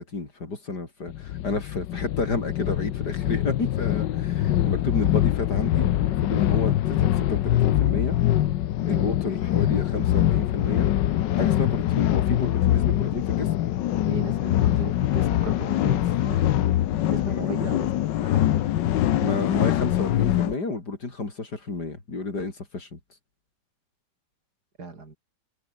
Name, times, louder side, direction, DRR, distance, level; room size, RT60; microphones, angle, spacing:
voice 1, 0.0-8.2 8.9-10.9 11.3-13.5 17.3-17.9 19.2-23.0, left 3 dB, 65° left, 5.0 m, -31 dB
sound 1, 1.1-20.5, left 13 dB, 90° left, 1.5 m, -23 dB
voice 2, 14.1-16.4 17.1-17.8 18.2-18.4 24.8-25.2, right 3 dB, 65° right, 4.0 m, -36 dB
omnidirectional pair, 1.9 m